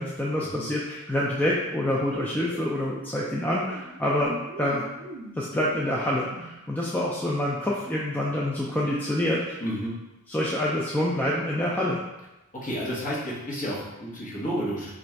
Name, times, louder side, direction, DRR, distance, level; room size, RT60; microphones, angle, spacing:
voice 1, 0.0-4.8 5.4-9.6 10.3-12.0, left 1 dB, 10° left, -5 dB, 0.3 m, -27 dB
sound 1, 2.1-7.6, right 2 dB, 70° right, 0.5 m, -42 dB
voice 2, 9.6-9.9 12.6-14.9, equal, 35° left, -7 dB, 1.2 m, -31 dB
3.1 x 2.5 x 4.4 m, 1.0 s
head